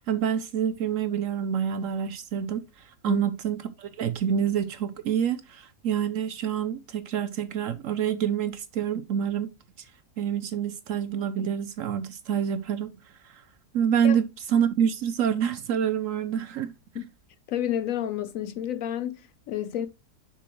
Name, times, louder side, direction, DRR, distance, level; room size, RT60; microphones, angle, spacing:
voice 1, 0.0-9.5 10.2-12.9 13.2-13.4 13.7-16.7, right 8 dB, 65° right, 0.8 m, -27 dB
voice 2, 17.5-19.9, left 11 dB, 70° left, 0.9 m, -30 dB
6.8 x 6.1 x 3.0 m
omnidirectional pair, 1.7 m